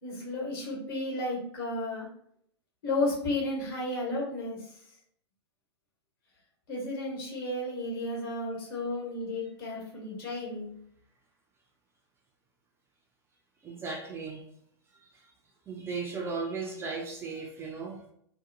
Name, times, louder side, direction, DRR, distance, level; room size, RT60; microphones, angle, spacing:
voice 1, 0.0-2.1 2.8-4.8 6.7-10.7, left 2 dB, 55° left, -2 dB, 1.2 m, -33 dB
voice 2, 13.6-14.5 15.0-15.3 15.7-18.1, right 4 dB, 15° right, 0 dB, 0.4 m, -36 dB
2.6 x 2.1 x 2.6 m, 0.69 s
figure-of-eight pair, 100°, 14 cm